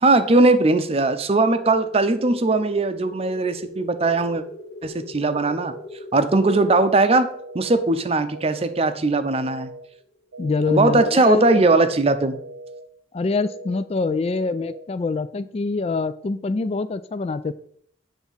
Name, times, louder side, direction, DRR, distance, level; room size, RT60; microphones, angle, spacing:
voice 1, 0.0-4.4 4.8-5.7 6.1-7.3 7.5-9.7 10.7-12.4, right 2 dB, 35° right, 10 dB, 0.6 m, -19 dB
sound 1, 2.0-10.3, left 1 dB, 60° left, 1.5 m, -42 dB
sound 2, 5.3-5.8 6.3-6.8 7.3-7.8 8.3-8.8 9.3-9.8 10.3-10.8 11.3-11.8 12.3-12.8 13.3-13.8 14.3-14.8, right 2 dB, 85° right, 0.6 m, -40 dB
voice 2, 10.4-11.8 13.1-17.5, left 3 dB, 35° left, 14 dB, 0.3 m, -25 dB
8.1 x 3.5 x 5.5 m, 0.63 s
head